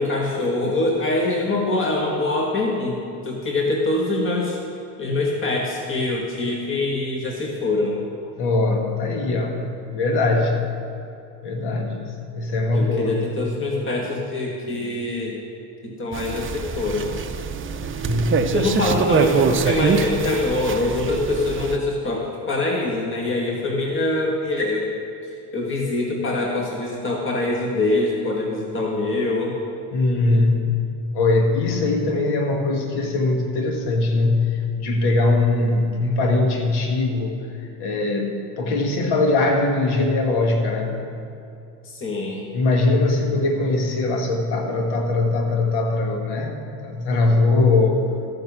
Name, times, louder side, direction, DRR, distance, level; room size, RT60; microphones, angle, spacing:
voice 1, 0.0-4.6 5.0-8.0 12.7-15.4 15.8-17.1 18.5-24.9 25.2-29.5 41.8-42.4, left 2 dB, 25° left, -1 dB, 1.6 m, -24 dB
voice 2, 8.4-10.8 11.4-13.2 18.1-18.5 29.9-30.8 31.1-41.0 42.5-48.2, left 2 dB, 60° left, 3 dB, 1.6 m, -21 dB
sound 1, 16.1-21.8, right 5 dB, 30° right, 0.7 m, -24 dB
14.0 x 5.3 x 6.0 m, 2.7 s
supercardioid pair, 80°, 44 cm